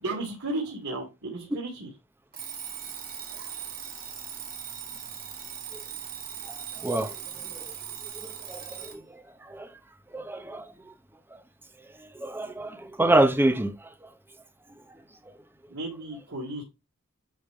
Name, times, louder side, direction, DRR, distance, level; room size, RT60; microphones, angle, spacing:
voice 1, 0.0-1.9 15.7-16.6, right 2 dB, 80° right, 2.6 m, -34 dB
Alarm, 2.3-9.0, right 9 dB, 45° right, 1.8 m, -39 dB
voice 2, 6.5-7.1 7.5-7.6 8.2-9.0 9.4-9.7 10.1-10.6 12.0-13.7, right 1 dB, 10° right, 0.9 m, -26 dB
10.0 x 3.4 x 4.5 m
head